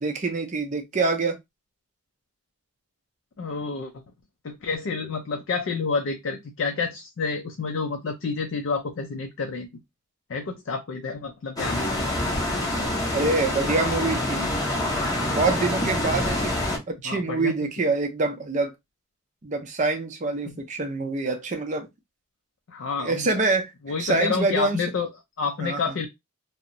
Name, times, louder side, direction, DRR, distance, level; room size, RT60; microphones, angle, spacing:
voice 1, 0.0-1.4 13.1-14.5 15.3-16.5 16.9-18.7 19.4-21.9 23.0-23.7 24.0-24.9 25.6-26.0, right 3 dB, 35° right, 0.5 m, -25 dB
voice 2, 3.4-3.9 4.4-9.7 10.3-11.9 17.0-17.5 20.5-20.6 22.7-23.3 23.9-25.1 25.4-26.1, left 4 dB, 60° left, 0.4 m, -29 dB
sound 1, 11.6-16.8, left 1 dB, 15° left, 0.6 m, -26 dB
2.7 x 2.0 x 2.5 m
head